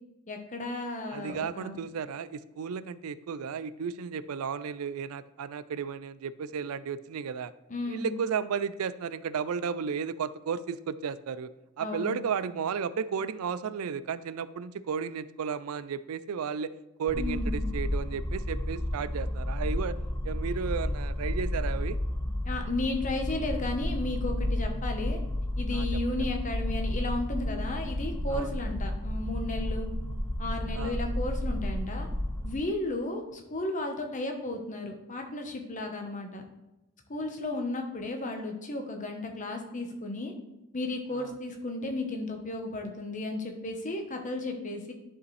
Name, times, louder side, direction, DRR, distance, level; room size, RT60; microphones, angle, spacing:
voice 1, 0.3-1.8 7.7-8.1 11.8-12.3 17.1-17.7 22.4-25.2 25.6-29.9 30.4-32.1 32.4-36.4 37.1-40.3 40.7-44.9, left 2 dB, 35° left, 4 dB, 1.1 m, -34 dB
voice 2, 1.1-7.5 7.9-11.5 11.8-16.7 17.0-20.0 20.2-22.0 25.7-25.9 28.3-28.5 30.7-31.0 41.1-41.3, right 6 dB, 80° right, 16 dB, 0.4 m, -33 dB
sound 1, 17.1-32.6, left 1 dB, 10° left, 0.4 m, -32 dB
11.0 x 5.1 x 3.3 m, 0.97 s
head